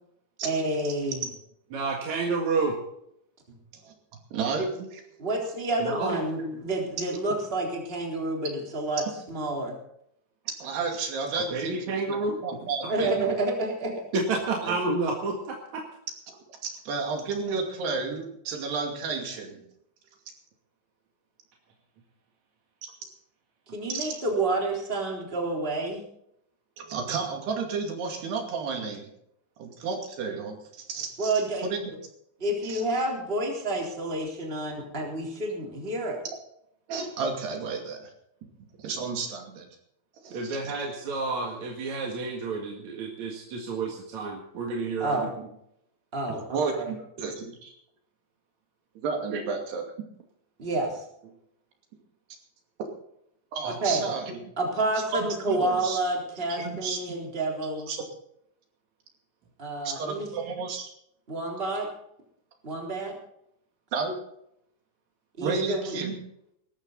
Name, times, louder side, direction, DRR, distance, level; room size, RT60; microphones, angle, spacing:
voice 1, 0.4-1.2 5.2-9.8 12.8-13.9 23.7-26.1 31.2-31.7 32.4-36.2 45.0-45.3 46.1-46.6 50.6-51.0 53.8-54.1 54.6-57.9 59.6-60.3 61.3-61.9 62.6-63.1 65.4-66.0, right 2 dB, 15° right, 0 dB, 3.4 m, -29 dB
voice 2, 1.7-2.8 5.8-6.6 11.5-12.4 13.0-13.1 14.1-15.8 40.3-45.3 49.3-49.4 53.6-53.7, right 3 dB, 50° right, 1 dB, 2.7 m, -30 dB
voice 3, 4.3-5.0 10.6-13.4 14.6-14.8 16.6-19.6 23.9-24.1 26.8-29.1 29.6-31.8 32.7-32.8 36.9-38.1 38.8-39.7 40.2-40.7 46.3-47.7 49.0-49.8 53.5-54.4 55.5-56.0 56.5-57.0 57.9-58.0 59.8-60.9 63.9-64.1 65.4-66.2, right 4 dB, 75° right, 2 dB, 4.5 m, -32 dB
19.5 x 14.0 x 4.1 m, 0.75 s
omnidirectional pair, 4.8 m